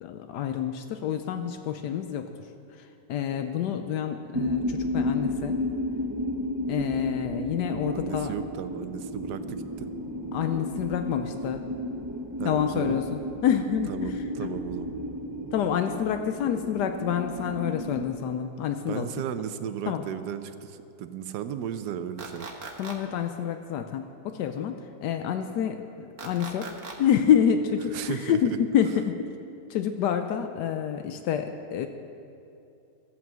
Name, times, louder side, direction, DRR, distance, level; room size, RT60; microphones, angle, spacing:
voice 1, 0.0-2.3 2.8-5.6 6.7-8.3 10.3-11.7 12.4-14.1 15.5-19.1 19.9-20.0 22.8-29.2 29.7-31.9, left 8 dB, 80° left, 7 dB, 1.2 m, -28 dB
sound 1, 4.3-18.1, left 1 dB, 30° right, 0.4 m, -32 dB
voice 2, 7.9-9.9 12.4-13.0 13.9-15.0 18.9-22.5 27.9-28.6, right 9 dB, 75° right, 11 dB, 1.2 m, -35 dB
sound 2, 22.2-22.9 26.2-26.9, right 4 dB, 50° right, 1.5 m, -39 dB
13.0 x 8.5 x 7.5 m, 2.6 s
omnidirectional pair, 1.8 m